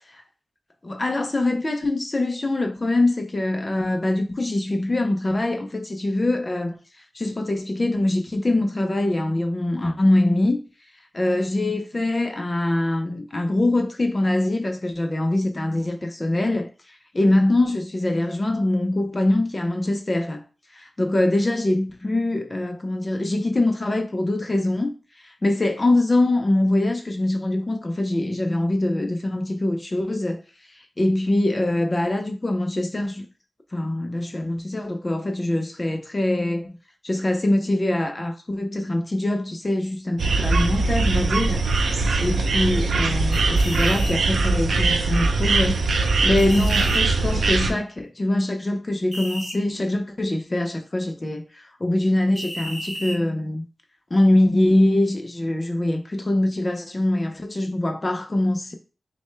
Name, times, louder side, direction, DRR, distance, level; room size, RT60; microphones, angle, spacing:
voice 1, 0.8-10.6 11.1-20.4 20.7-30.4 30.7-33.3 33.7-36.8 37.0-45.8 46.2-53.6 54.1-58.7, left 1 dB, 30° left, 0.5 m, -23 dB
sound 1, 40.2-47.7, right 3 dB, 85° right, 0.5 m, -21 dB
sound 2, 43.3-44.2 46.4-47.0 49.1-49.6 52.3-53.2, equal, 5° right, 0.9 m, -33 dB
6.2 x 2.2 x 3.3 m
wide cardioid pair, 80°, 0 cm